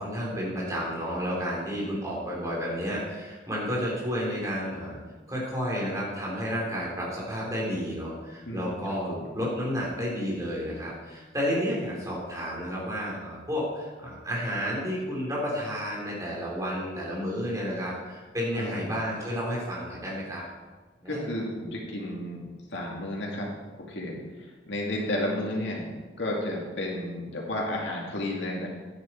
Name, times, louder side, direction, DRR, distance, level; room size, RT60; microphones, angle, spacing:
voice 1, 0.0-5.0 5.3-20.4 21.0-21.2, equal, 20° right, -5 dB, 3.3 m, -31 dB
voice 2, 8.5-8.8 9.1-9.3 18.5-18.9 21.1-23.5 23.9-25.9 26.2-28.7, left 1 dB, 75° left, -2 dB, 2.4 m, -32 dB
10.5 x 9.8 x 4.4 m, 1.3 s
head